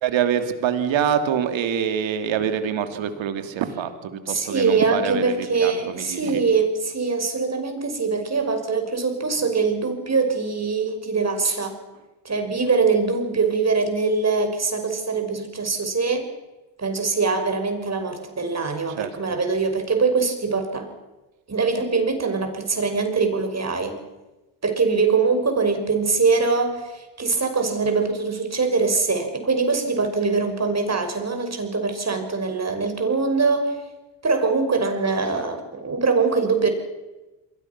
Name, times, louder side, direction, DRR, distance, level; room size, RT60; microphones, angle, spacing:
voice 1, 0.0-6.4 18.9-19.1, right 8 dB, 65° right, 9 dB, 2.9 m, -25 dB
voice 2, 4.3-11.8 12.2-16.3 16.8-20.9 21.5-24.0 24.6-33.8 34.2-36.7, right 4 dB, 30° right, 6 dB, 6.0 m, -23 dB
28.5 x 22.5 x 6.1 m, 1.1 s
hypercardioid pair, 60°, 48 cm